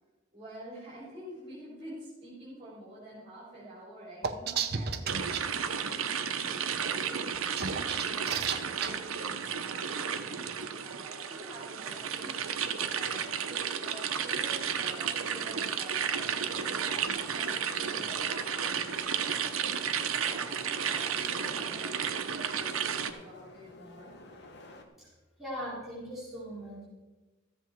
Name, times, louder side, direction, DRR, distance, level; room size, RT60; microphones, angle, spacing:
voice 1, 0.3-7.3 7.8-24.1, right 1 dB, 25° right, -8 dB, 3.9 m, -49 dB
sound 1, 4.2-5.4 7.3-8.9, right 6 dB, 50° right, 0.7 m, -32 dB
sound 2, 5.1-23.1, right 7 dB, 90° right, 0.8 m, -33 dB
sound 3, 16.1-24.8, left 1 dB, 55° left, 1.2 m, -50 dB
voice 2, 25.4-26.9, equal, ahead, -9 dB, 4.3 m, -40 dB
14.0 x 8.0 x 4.6 m, 1.2 s
head